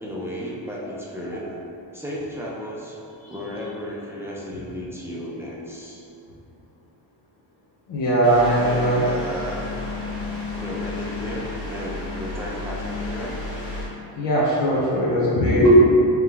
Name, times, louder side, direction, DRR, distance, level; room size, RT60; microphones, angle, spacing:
voice 1, 0.0-1.5 1.9-3.0 3.3-6.0 8.6-9.8 10.6-13.4, equal, 5° right, -5 dB, 0.5 m, -34 dB
voice 2, 7.9-9.1 14.2-15.7, right 1 dB, 80° left, -7 dB, 0.8 m, -19 dB
sound 1, 8.2-13.9, left 3 dB, 30° left, 1.1 m, -32 dB
4.8 x 2.3 x 3.3 m, 2.7 s
cardioid pair, 125°, 43 cm